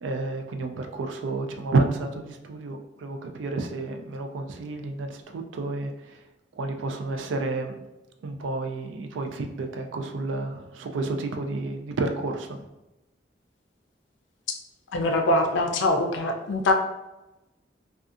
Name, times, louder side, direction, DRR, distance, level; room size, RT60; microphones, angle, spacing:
voice 1, 0.0-6.2 6.5-7.8 8.2-12.6, right 3 dB, 90° right, 5 dB, 0.3 m, -30 dB
voice 2, 14.9-16.7, left 2 dB, 85° left, 4 dB, 0.4 m, -23 dB
2.4 x 2.3 x 2.6 m, 0.97 s
head